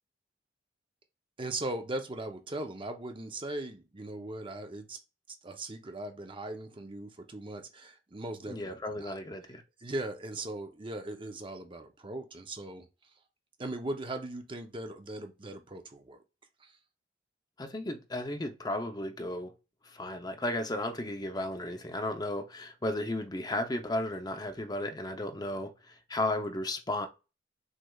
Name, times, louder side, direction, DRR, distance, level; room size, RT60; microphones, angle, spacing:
voice 1, 1.4-5.0 5.4-9.1 9.8-12.9 13.6-16.2 16.6-16.7, right 2 dB, 30° right, 0.7 m, -39 dB
voice 2, 8.5-9.6 17.6-19.5 19.8-27.1, left 1 dB, 20° left, 0.7 m, -34 dB
6.4 x 3.3 x 2.4 m
head